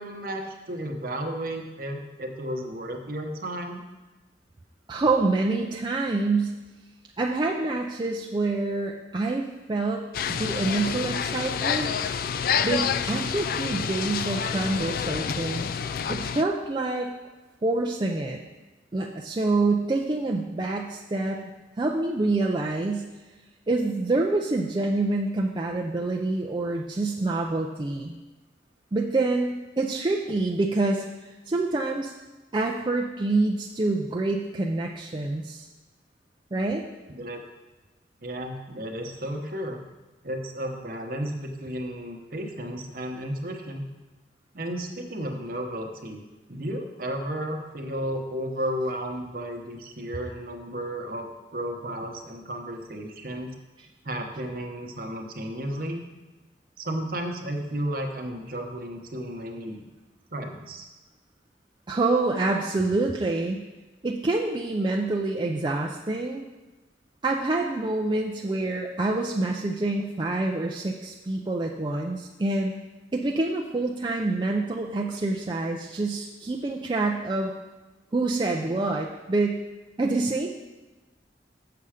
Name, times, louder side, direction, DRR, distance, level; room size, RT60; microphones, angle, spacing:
voice 1, 0.0-3.8 37.2-37.4 38.2-39.9 40.2-43.9 44.5-46.2 46.5-53.5 54.0-56.0 56.8-59.9 60.3-60.9, right 1 dB, 55° right, 4 dB, 0.9 m, -33 dB
voice 2, 4.9-6.5 7.2-11.9 12.6-15.7 16.1-17.1 17.6-18.4 18.9-21.4 21.8-23.1 23.7-28.2 28.9-32.1 32.5-35.7 36.5-36.8 61.9-63.6 64.0-66.4 67.2-72.8 73.1-77.5 78.1-79.6 80.0-80.5, right 2 dB, 25° right, 0 dB, 0.4 m, -26 dB
sound 1, 10.1-16.4, left 7 dB, 55° left, 0.3 m, -28 dB
6.8 x 6.8 x 4.9 m, 1.1 s
head